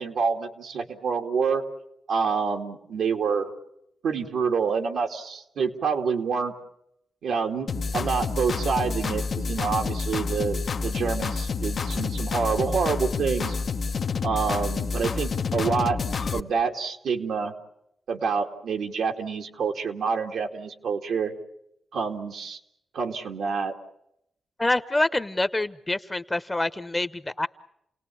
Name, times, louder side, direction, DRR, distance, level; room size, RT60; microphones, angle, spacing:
voice 1, 0.0-1.6 2.1-3.5 4.0-6.5 7.2-13.6 14.2-16.0 16.3-17.5 18.1-21.3 21.9-22.6 22.9-23.7, right 5 dB, 85° right, 3 dB, 2.5 m, -27 dB
sound 1, 7.7-16.4, left 5 dB, 60° left, 1.0 m, -28 dB
voice 2, 24.6-27.5, left 2 dB, 20° left, 13 dB, 1.0 m, -26 dB
29.5 x 18.5 x 8.6 m, 0.80 s
cardioid pair, 65°, 0 cm